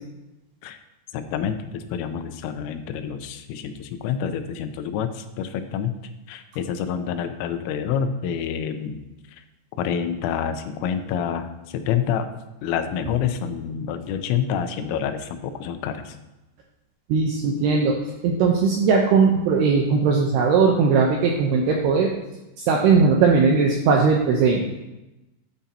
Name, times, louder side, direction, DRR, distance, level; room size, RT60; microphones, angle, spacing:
voice 1, 1.1-5.9 6.3-9.0 9.3-9.4 9.8-12.3 12.6-16.2, left 8 dB, 90° left, 9 dB, 3.4 m, -27 dB
voice 2, 17.1-18.0 18.2-22.1 22.7-24.6, right 5 dB, 85° right, 0 dB, 2.4 m, -19 dB
12.5 x 9.9 x 2.9 m, 0.99 s
omnidirectional pair, 5.7 m